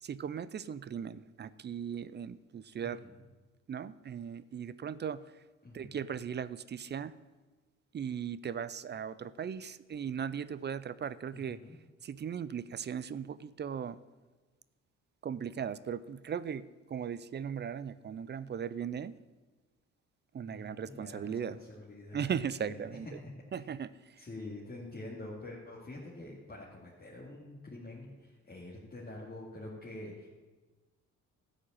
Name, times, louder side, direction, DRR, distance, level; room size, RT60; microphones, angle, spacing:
voice 1, 0.0-3.0 3.7-5.2 5.7-7.1 7.9-11.6 12.0-14.0 15.2-19.1 20.3-21.6 22.1-23.1 23.5-24.2, right 8 dB, 35° right, 17 dB, 0.4 m, -38 dB
voice 2, 2.8-3.2 5.6-6.0 11.3-11.8 20.5-22.3 22.6-22.8 23.2-23.7 24.2-30.3, left 2 dB, 30° left, -6 dB, 2.4 m, -46 dB
13.0 x 5.1 x 8.7 m, 1.3 s
cardioid pair, 90°, 30 cm